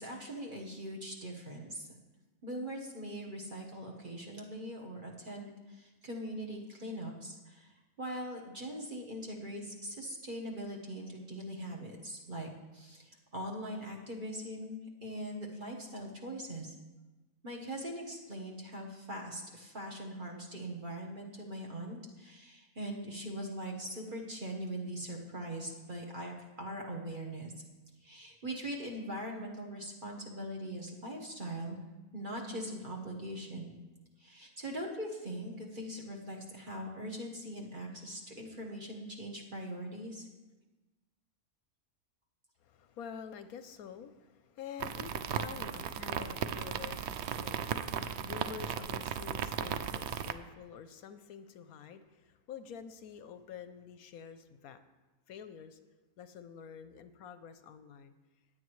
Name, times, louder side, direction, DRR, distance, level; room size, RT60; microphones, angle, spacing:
voice 1, 0.0-1.9 2.4-16.7 17.4-27.5 28.0-31.8 32.1-33.8 34.2-40.3, right 1 dB, 35° right, -1 dB, 1.3 m, -41 dB
voice 2, 42.6-54.8 55.3-55.8 56.2-58.1, left 7 dB, 75° left, 10 dB, 1.0 m, -48 dB
sound 1, 44.8-50.3, right 8 dB, 75° right, 0.6 m, -36 dB
16.0 x 9.5 x 3.1 m, 1.1 s
omnidirectional pair, 1.6 m